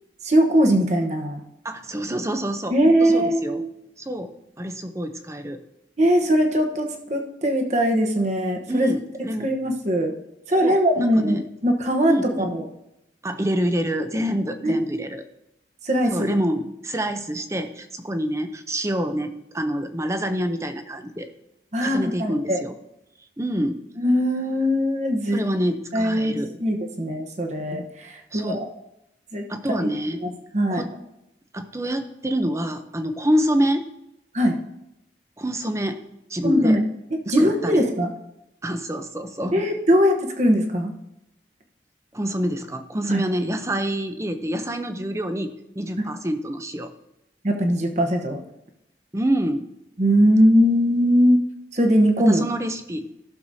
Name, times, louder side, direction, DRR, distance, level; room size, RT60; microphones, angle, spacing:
voice 1, 0.2-1.4 2.7-3.7 6.0-8.9 9.4-10.1 10.5-12.6 14.6-15.1 15.8-16.3 21.7-22.6 24.0-25.4 25.9-28.7 29.3-29.4 30.2-30.8 34.3-34.6 36.4-36.8 37.1-38.1 39.5-40.9 43.1-43.2 47.4-48.4 50.0-52.4, equal, 40° right, 3 dB, 1.1 m, -21 dB
voice 2, 1.6-3.6 4.0-5.6 8.7-9.5 10.6-11.5 12.1-12.5 13.2-15.2 16.1-21.3 21.8-22.7 23.4-23.8 25.3-26.5 28.3-28.6 29.5-30.2 30.7-30.9 31.5-33.8 35.4-36.0 36.3-36.8 37.4-37.8 38.6-39.7 42.1-46.9 49.1-49.7 52.2-53.1, equal, 15° right, 8 dB, 0.7 m, -27 dB
15.5 x 6.6 x 2.7 m, 0.86 s
head